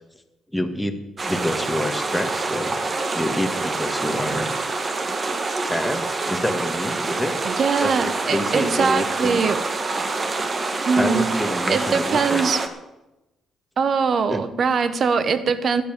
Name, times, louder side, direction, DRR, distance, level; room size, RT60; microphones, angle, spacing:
voice 1, 0.5-1.0 1.2-2.8 3.1-4.6 5.6-7.4 7.8-7.9 8.3-9.4 10.7-12.4 14.3-14.4, left 1 dB, 5° left, 4 dB, 1.7 m, -27 dB
sound 1, 1.2-12.7, right 3 dB, 35° right, 1.7 m, -26 dB
voice 2, 7.4-9.6 10.4-10.5 10.9-11.3 11.7-12.6 13.8-15.8, right 5 dB, 50° right, 12 dB, 1.3 m, -22 dB
13.0 x 9.7 x 7.5 m, 0.98 s
cardioid pair, 90°, 0 cm